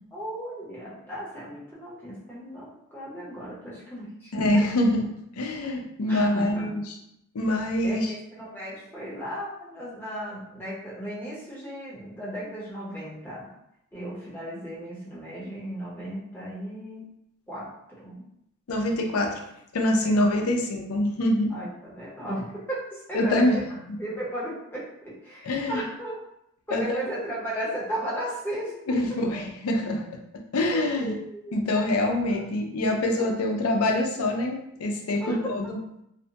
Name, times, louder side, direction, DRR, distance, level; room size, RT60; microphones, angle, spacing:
voice 1, 0.1-4.7 6.1-6.7 7.8-13.5 13.9-17.1 17.5-18.3 20.0-20.2 21.5-23.6 24.0-26.2 26.7-29.0 30.7-31.9 32.3-32.4 33.2-33.3 35.2-35.7, right 1 dB, 10° left, -7 dB, 0.7 m, -35 dB
voice 2, 4.3-5.0 5.4-6.8 7.3-8.1 18.7-19.4 19.7-21.5 23.1-23.6 25.4-25.8 26.7-27.0 28.9-30.0 30.5-31.1 31.5-35.8, left 1 dB, 90° left, 2 dB, 0.5 m, -25 dB
2.6 x 2.1 x 2.8 m, 0.80 s
head